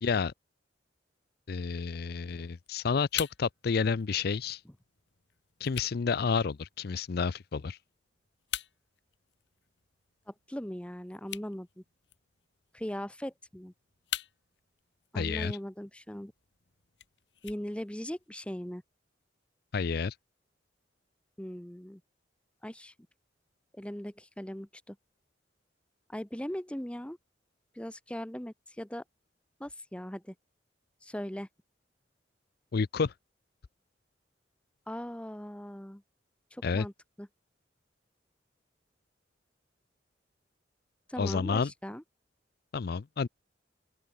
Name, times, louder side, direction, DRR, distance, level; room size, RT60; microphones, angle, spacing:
voice 1, 0.0-0.3 1.5-4.6 5.6-7.8 15.1-15.6 19.7-20.1 32.7-33.1 36.6-36.9 41.2-41.7 42.7-43.3, left 5 dB, 60° left, 0.5 m, -30 dB
sound 1, 2.3-18.3, left 11 dB, 75° left, 1.8 m, -46 dB
voice 2, 10.3-11.8 12.7-13.7 15.1-16.3 17.4-18.8 21.4-22.0 22.6-22.9 23.7-25.0 26.1-27.2 27.7-29.0 29.6-30.3 31.0-31.5 34.9-36.0 36.5-36.9 37.2-37.3 41.1-42.0, equal, 5° left, 0.9 m, -39 dB
open air
head